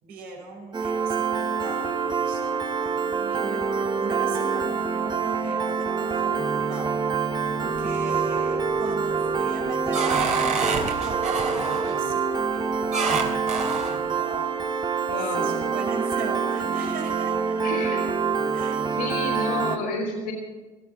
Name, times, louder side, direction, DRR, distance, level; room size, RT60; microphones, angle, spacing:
voice 1, 0.0-7.3 7.8-13.3 13.8-14.5 15.2-17.6 18.5-18.8 19.1-19.2, right 4 dB, 65° right, 1 dB, 5.3 m, -39 dB
Piano, 0.7-19.8, right 5 dB, 25° right, 1.5 m, -26 dB
sound 1, 7.5-8.1 8.6-9.0 9.4-12.0 12.9-14.0, right 4 dB, 45° right, 3.7 m, -28 dB
voice 2, 15.1-15.5 17.6-18.1 18.9-20.3, left 3 dB, 85° left, -4 dB, 3.6 m, -30 dB
18.5 x 14.5 x 4.2 m, 1.3 s
supercardioid pair, 75°, 16 cm